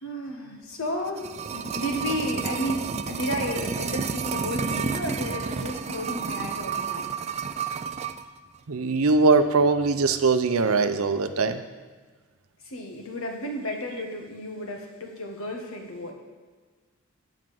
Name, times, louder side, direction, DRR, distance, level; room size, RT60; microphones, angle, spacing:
voice 1, 0.0-7.2 12.6-16.1, left 1 dB, 80° left, 1 dB, 1.5 m, -33 dB
sound 1, 0.8-8.3 8.5-8.6, right 5 dB, 30° right, 0.3 m, -31 dB
voice 2, 8.7-11.6, right 4 dB, 80° right, 9 dB, 0.6 m, -21 dB
9.4 x 4.9 x 7.6 m, 1.4 s
head